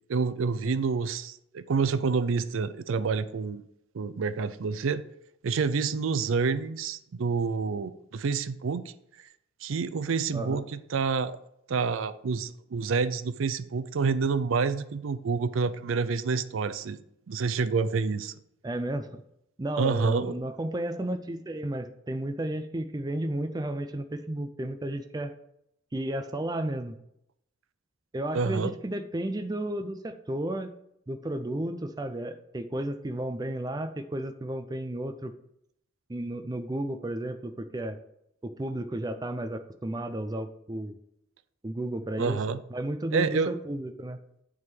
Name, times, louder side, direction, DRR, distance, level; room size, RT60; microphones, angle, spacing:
voice 1, 0.1-3.6 3.9-5.0 5.4-8.8 9.6-11.3 11.7-17.0 17.3-18.3 19.8-20.3 28.3-28.7 42.2-42.6 43.1-43.5, right 5 dB, 75° right, 14 dB, 0.5 m, -28 dB
voice 2, 18.6-19.2 19.6-25.3 25.9-27.0 28.1-30.7 31.1-35.3 36.1-38.0 38.4-41.0 41.6-42.4 42.7-44.2, right 1 dB, 20° right, 8 dB, 0.4 m, -33 dB
9.4 x 3.7 x 5.9 m, 0.77 s
head